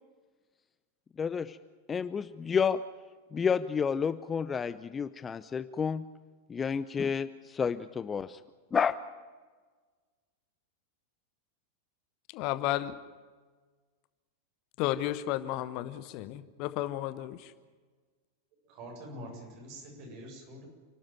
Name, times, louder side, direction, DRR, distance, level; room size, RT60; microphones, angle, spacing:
voice 1, 1.2-1.6 1.9-2.8 3.3-6.0 6.5-8.4 8.7-8.9, left 6 dB, 20° left, 14 dB, 0.7 m, -30 dB
voice 2, 12.3-12.9 14.8-17.5, left 14 dB, 45° left, 13 dB, 1.1 m, -33 dB
voice 3, 18.7-20.7, equal, 45° right, 2 dB, 7.8 m, -45 dB
29.0 x 13.0 x 9.4 m, 1.4 s
figure-of-eight pair, 90°, 0 cm